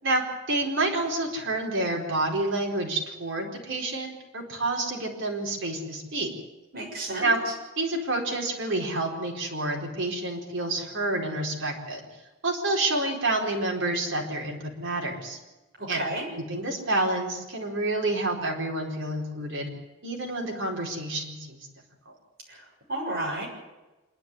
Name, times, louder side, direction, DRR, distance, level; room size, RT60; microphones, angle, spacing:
voice 1, 0.0-6.3 7.2-7.4 7.8-12.0 12.4-15.4 15.9-16.0 16.5-19.7 20.0-21.6, right 2 dB, 65° right, 0 dB, 4.5 m, -28 dB
voice 2, 6.7-7.5 15.8-16.2 22.5-23.5, right 1 dB, 50° right, -2 dB, 6.9 m, -32 dB
26.0 x 11.0 x 9.5 m, 1.1 s
head